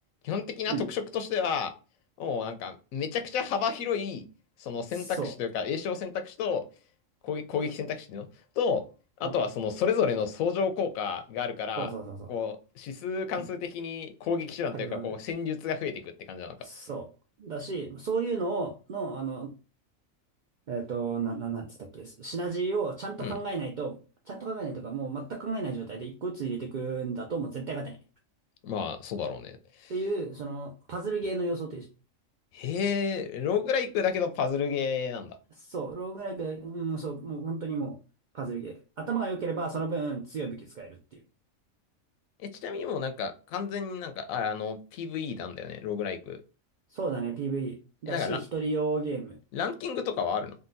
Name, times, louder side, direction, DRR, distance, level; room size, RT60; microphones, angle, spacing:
voice 1, 0.2-1.7 2.2-4.3 4.6-6.6 7.2-8.3 8.6-8.8 9.2-11.9 12.3-16.5 23.2-23.4 28.6-29.9 32.5-35.4 42.6-46.4 48.1-48.4 49.5-50.5, left 6 dB, 90° left, 1.0 m, -31 dB
voice 2, 4.9-5.3 9.2-9.4 11.8-12.3 13.4-13.5 14.7-15.1 16.6-17.1 17.4-19.5 20.7-24.0 24.3-28.0 29.9-31.9 35.6-38.0 38.3-41.2 46.9-47.8 48.0-49.4, right 4 dB, 75° right, 0.4 m, -33 dB
3.8 x 2.2 x 2.5 m
omnidirectional pair, 1.4 m